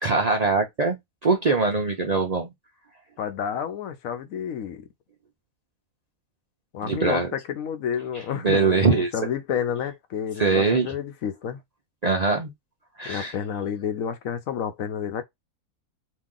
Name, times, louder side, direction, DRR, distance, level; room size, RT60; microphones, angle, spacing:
voice 1, 0.0-2.5 6.8-7.3 8.4-9.1 10.4-10.9 12.0-12.5 13.0-13.3, right 4 dB, 50° right, 0.5 m, -22 dB
voice 2, 3.2-4.9 6.7-11.6 13.0-15.2, left 8 dB, 75° left, 1.1 m, -30 dB
3.1 x 2.5 x 3.7 m
omnidirectional pair, 1.5 m